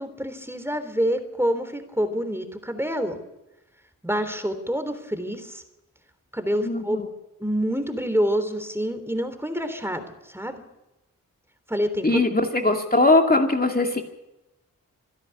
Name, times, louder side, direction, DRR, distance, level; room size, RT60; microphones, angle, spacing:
voice 1, 0.0-3.2 4.0-5.6 6.3-7.0 7.4-10.6 11.7-12.2, equal, 5° right, 9 dB, 3.5 m, -27 dB
voice 2, 6.6-7.1 12.0-14.0, left 2 dB, 25° left, 2 dB, 2.4 m, -20 dB
26.0 x 10.5 x 9.8 m, 0.96 s
cardioid pair, 50°, 33 cm